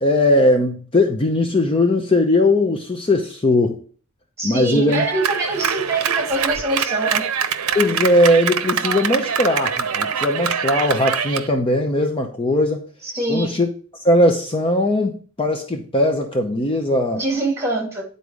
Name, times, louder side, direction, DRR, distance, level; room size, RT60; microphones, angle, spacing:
voice 1, 0.0-3.8 4.4-5.0 7.7-12.9 13.3-13.7 14.0-17.2, left 1 dB, 25° left, 3 dB, 0.7 m, -19 dB
voice 2, 4.4-7.2 13.0-13.5 17.1-18.0, right 2 dB, 15° right, 0 dB, 2.3 m, -24 dB
Clapping, 4.9-11.5, right 7 dB, 80° right, 0.6 m, -24 dB
9.9 x 4.1 x 4.9 m, 0.41 s
head